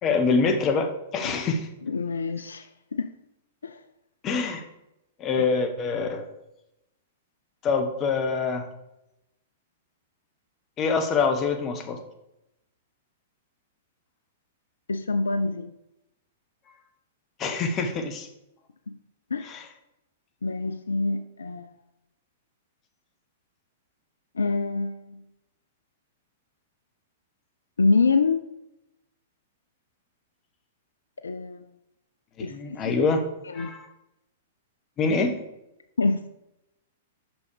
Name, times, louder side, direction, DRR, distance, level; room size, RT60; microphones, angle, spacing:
voice 1, 0.0-1.7 4.2-4.6 5.2-6.2 7.6-8.7 10.8-12.0 17.4-18.3 19.4-19.6 32.4-33.2 33.5-33.9 35.0-35.4, left 4 dB, 30° left, 6 dB, 1.3 m, -25 dB
voice 2, 1.8-3.1 3.6-3.8 5.4-5.5 14.9-15.7 18.9-19.0 19.3-19.5 20.4-21.7 24.3-25.2 27.8-28.5 31.2-31.7 32.4-33.1 33.5-33.7 36.0-36.3, left 3 dB, 80° left, 10 dB, 0.4 m, -26 dB
6.3 x 6.1 x 4.9 m, 0.88 s
figure-of-eight pair, 105°, 0 cm